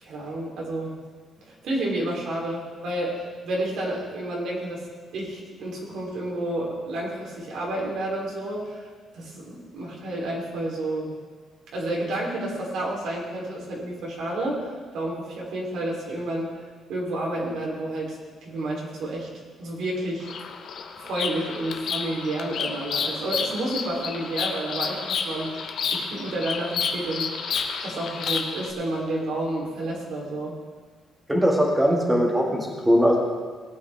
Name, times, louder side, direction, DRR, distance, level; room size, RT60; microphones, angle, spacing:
voice 1, 0.0-0.9 1.5-4.8 5.1-8.9 9.1-11.1 11.7-14.7 14.9-16.5 16.9-19.3 19.6-20.3 21.0-27.6 27.8-30.6, right 1 dB, 70° right, -2 dB, 3.5 m, -30 dB
Bird vocalization bird call bird song, 20.2-28.7, left 6 dB, 55° left, 1.0 m, -30 dB
voice 2, 31.3-33.2, equal, 10° right, -1 dB, 2.0 m, -20 dB
19.0 x 9.1 x 3.6 m, 1.5 s
cardioid pair, 145°, 0 cm